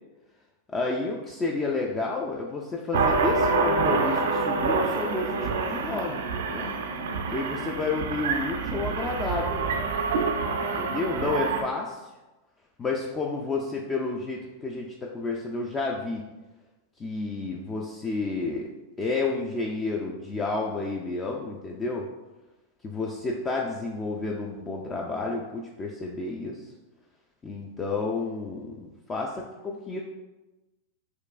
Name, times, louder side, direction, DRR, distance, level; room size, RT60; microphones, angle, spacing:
voice 1, 0.7-6.2 6.5-6.7 7.3-9.6 10.6-12.1 12.8-16.2 17.0-18.7 19.0-22.1 22.8-26.6 27.4-30.0, left 3 dB, 20° left, -1 dB, 0.3 m, -31 dB
sound 1, 2.9-11.6, right 4 dB, 80° right, 0.4 m, -27 dB
4.4 x 2.4 x 2.4 m, 1.1 s
hypercardioid pair, 125°, 0 cm